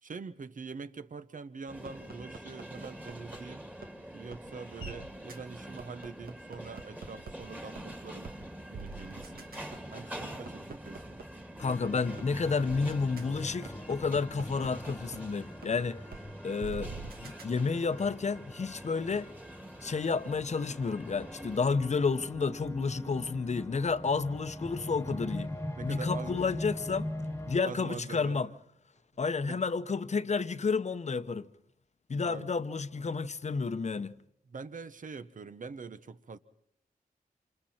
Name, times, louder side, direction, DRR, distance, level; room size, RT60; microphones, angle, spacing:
voice 1, 0.0-3.7 4.1-8.3 8.7-9.5 9.9-11.1 25.8-26.4 27.6-28.6 29.5-29.6 32.2-32.5 34.5-36.4, right 5 dB, 60° right, 1.0 m, -44 dB
sound 1, 1.7-21.6, equal, 10° right, 2.1 m, -46 dB
sound 2, 1.9-3.4 3.8-3.9 4.3-4.4 4.8-4.9 5.3-5.4 5.8-7.3 7.8-7.9 8.2-8.4 8.7-11.2 11.7-11.8 12.2-12.3 12.7-12.8 13.2-13.3 13.7-15.2 15.6-15.7 16.1-16.2 16.6-17.4, right 4 dB, 85° right, 1.6 m, -43 dB
voice 2, 11.6-16.0 16.4-16.9 17.2-19.3 19.8-25.5 25.8-27.1 27.5-28.5 29.2-31.5 32.1-34.1, left 4 dB, 50° left, 0.9 m, -31 dB
sound 3, 11.6-27.6, left 1 dB, 15° left, 1.5 m, -42 dB
27.5 x 27.5 x 4.4 m
wide cardioid pair, 100°, 16 cm